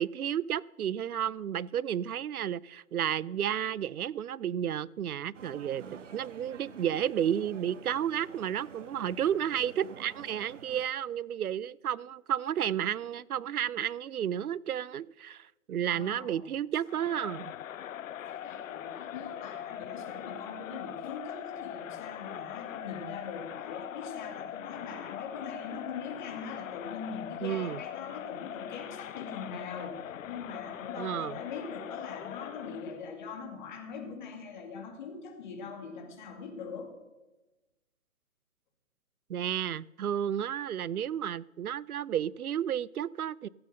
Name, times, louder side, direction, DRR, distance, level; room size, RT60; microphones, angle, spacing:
voice 1, 0.0-5.8 6.1-17.5 27.4-27.8 31.0-31.4 39.3-43.5, right 9 dB, 85° right, 23 dB, 0.6 m, -32 dB
sound 1, 5.3-10.9, right 6 dB, 60° right, 1.0 m, -49 dB
voice 2, 15.9-16.5 18.1-30.0 30.3-36.9, left 5 dB, 35° left, 4 dB, 2.3 m, -42 dB
Crowd, 16.9-33.0, left 10 dB, 65° left, 0.5 m, -41 dB
14.5 x 7.8 x 6.4 m, 1.1 s
hypercardioid pair, 150°, 43 cm